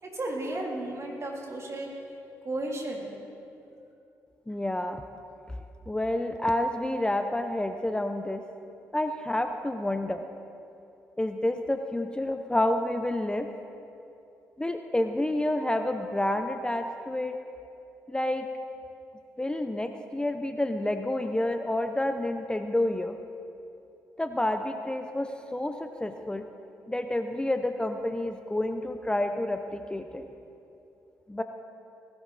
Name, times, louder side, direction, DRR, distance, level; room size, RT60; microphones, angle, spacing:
voice 1, 0.0-1.9 2.4-3.1, right 1 dB, 45° right, -1 dB, 3.2 m, -34 dB
voice 2, 4.5-5.0 5.9-8.4 8.9-10.2 11.2-13.5 14.6-17.4 18.1-18.5 19.4-23.2 24.2-26.5 26.9-30.3 31.3-31.4, left 1 dB, 15° left, 7 dB, 0.8 m, -29 dB
19.0 x 11.5 x 4.2 m, 2.7 s
supercardioid pair, 50°, 7 cm